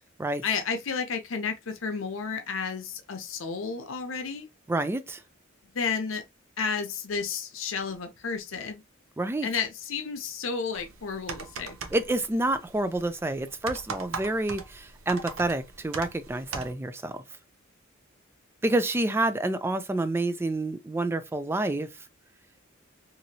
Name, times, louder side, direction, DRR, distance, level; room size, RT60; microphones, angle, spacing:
voice 1, 0.4-4.5 5.7-6.2 6.6-8.8 9.4-11.8, left 5 dB, 70° left, 0.7 m, -32 dB
voice 2, 4.7-5.2 9.2-9.5 11.9-17.2 18.6-21.9, right 2 dB, 10° right, 0.3 m, -28 dB
sound 1, 10.7-16.7, right 5 dB, 70° right, 0.6 m, -40 dB
2.9 x 2.6 x 2.7 m
head